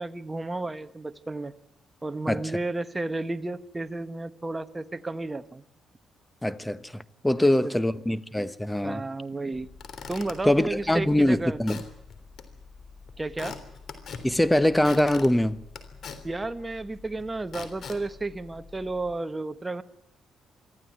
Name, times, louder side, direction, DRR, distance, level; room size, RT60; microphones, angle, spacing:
voice 1, 0.0-1.5 2.0-5.6 7.4-7.8 8.8-9.7 10.1-11.6 13.2-13.6 16.2-19.8, right 2 dB, 20° right, 1.2 m, -32 dB
voice 2, 6.4-9.0 10.5-11.8 14.2-15.6, left 1 dB, 5° left, 1.0 m, -23 dB
Squeak / Wood, 9.5-19.1, left 5 dB, 60° left, 3.4 m, -44 dB
24.0 x 14.5 x 9.8 m
cardioid pair, 90°, 0 cm